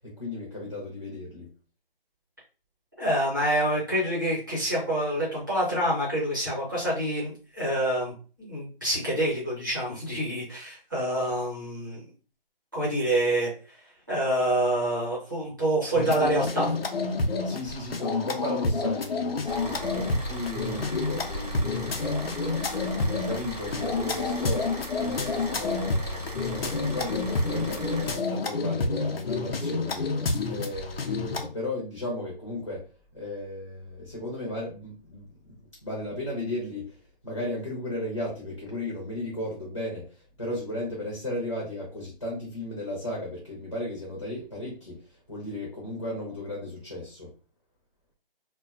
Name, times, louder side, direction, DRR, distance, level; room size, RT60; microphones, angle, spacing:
voice 1, 0.0-1.5 17.2-22.1 22.7-30.1 30.4-32.8 33.1-35.6 35.8-36.9 37.2-45.0 45.3-47.3, left 1 dB, 35° left, -4 dB, 0.6 m, -35 dB
voice 2, 3.0-12.0 12.7-13.8 14.1-16.7, right 1 dB, 20° right, -8 dB, 0.9 m, -27 dB
sound 1, 16.0-31.5, left 3 dB, 80° left, 0.6 m, -29 dB
Car / Idling, 19.5-28.1, equal, 45° right, 0.5 m, -39 dB
2.4 x 2.2 x 2.4 m, 0.37 s
figure-of-eight pair, 180°, 29 cm